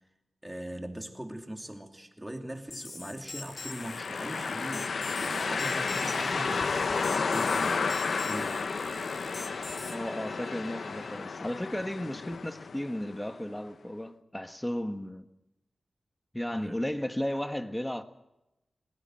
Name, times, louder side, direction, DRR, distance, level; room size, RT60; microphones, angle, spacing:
voice 1, 0.4-8.6 16.5-16.8, right 1 dB, 10° right, 2.7 m, -41 dB
sound 1, 2.7-9.9, left 3 dB, 55° left, 2.5 m, -42 dB
sound 2, 3.5-13.3, left 5 dB, 80° left, 0.8 m, -32 dB
sound 3, 5.2-11.3, right 3 dB, 50° right, 4.6 m, -46 dB
voice 2, 9.9-15.3 16.3-18.0, left 1 dB, 10° left, 1.5 m, -34 dB
20.0 x 17.5 x 7.7 m
wide cardioid pair, 70°, 0 cm